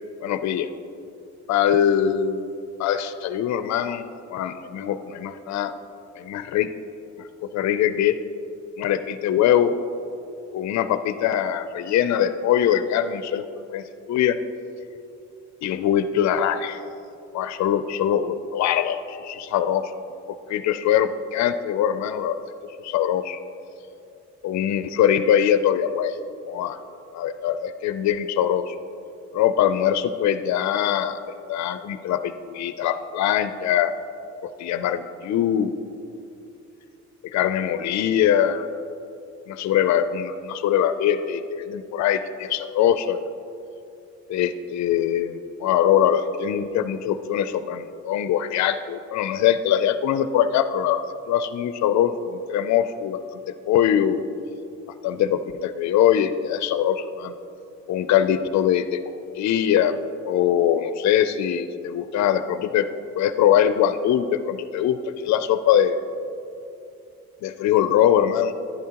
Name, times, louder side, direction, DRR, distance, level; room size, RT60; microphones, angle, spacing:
voice 1, 0.2-0.7 1.5-2.5 2.8-5.7 6.2-6.7 7.2-8.2 8.8-9.7 10.5-13.8 14.1-14.4 15.6-16.8 17.3-19.9 20.5-22.5 22.8-23.4 24.4-26.2 26.5-26.8 27.1-28.8 29.3-31.2 31.5-33.9 34.4-35.7 37.2-38.7 39.5-43.2 44.3-53.2 53.7-54.2 55.0-57.3 57.9-59.0 59.4-60.0 60.2-62.9 63.1-65.0 65.2-66.0 67.4-68.5, left 10 dB, 65° left, 11 dB, 0.5 m, -22 dB
11.0 x 9.5 x 2.9 m, 2.7 s
cardioid pair, 90°, 30 cm